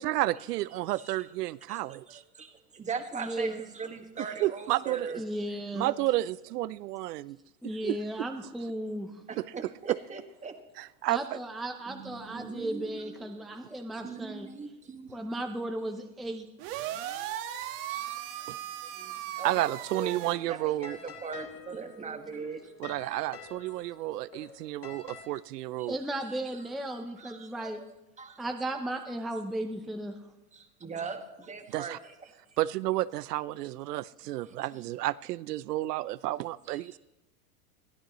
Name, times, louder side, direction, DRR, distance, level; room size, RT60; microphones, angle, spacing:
voice 1, 0.0-2.2 4.4-5.1 5.7-7.4 7.6-8.0 9.4-9.5 9.9-10.0 10.8-11.4 18.5-18.6 19.4-21.0 22.8-26.0 31.7-32.0 32.6-37.0, right 16 dB, 85° right, 0.6 m, -31 dB
voice 2, 0.9-1.3 1.7-1.8 2.1-5.2 9.3-10.6 11.9-15.7 17.2-17.4 17.9-18.5 18.9-23.3 24.3-24.8 25.8-25.9 26.2-27.8 28.2-28.4 28.7-28.8 29.9-30.0 30.5-32.3 34.5-34.8 36.7-37.0, right 5 dB, 15° right, 1.6 m, -41 dB
voice 3, 3.2-3.6 5.2-5.9 7.6-9.1 11.1-14.5 15.1-16.5 25.9-27.8 28.4-30.2, right 1 dB, ahead, 0.6 m, -35 dB
sound 1, 16.6-20.3, right 12 dB, 55° right, 1.6 m, -37 dB
sound 2, 19.6-25.2, left 6 dB, 30° left, 2.3 m, -49 dB
22.0 x 13.5 x 3.1 m
supercardioid pair, 130°, 46 cm